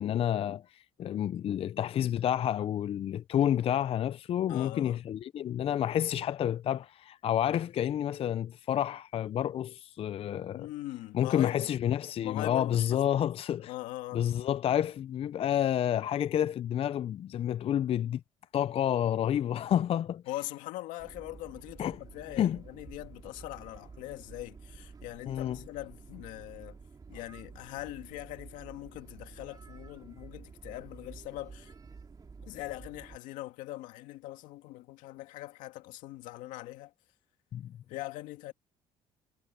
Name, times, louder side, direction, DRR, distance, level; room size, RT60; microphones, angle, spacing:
voice 1, 0.0-10.7 11.1-13.7 14.1-18.2 18.5-20.2 21.8-22.0 22.4-22.6 25.3-25.6 37.5-37.7, left 10 dB, 45° left, 0.5 m, -29 dB
voice 2, 4.5-5.0 10.5-11.7 12.2-13.3 13.6-14.3 19.4-19.6 20.3-26.8 27.1-31.7 32.4-36.9 37.9-38.5, left 17 dB, 80° left, 2.1 m, -42 dB
sound 1, 21.0-33.2, right 4 dB, 30° right, 2.9 m, -50 dB
supercardioid pair, 90°, 13 cm